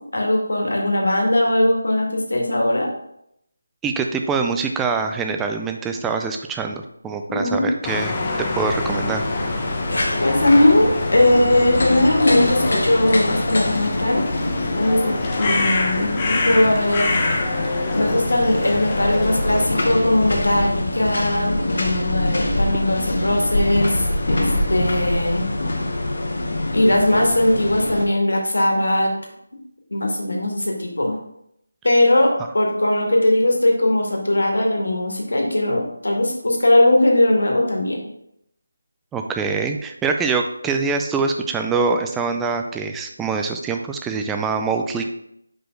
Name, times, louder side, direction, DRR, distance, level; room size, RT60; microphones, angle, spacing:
voice 1, 0.1-2.9 7.3-7.7 10.2-14.2 14.7-17.2 17.9-24.4 24.7-25.5 26.7-29.1 29.9-31.2 31.8-38.1, left 1 dB, 85° left, 0 dB, 1.8 m, -19 dB
voice 2, 3.8-8.2 8.6-9.2 39.1-45.1, right 4 dB, 5° right, 4 dB, 0.4 m, -24 dB
sound 1, 7.8-19.7, left 3 dB, 20° left, 0.7 m, -26 dB
sound 2, 8.7-28.1, left 1 dB, 60° left, 1.0 m, -25 dB
5.1 x 4.5 x 4.5 m, 0.76 s
figure-of-eight pair, 170°, 0 cm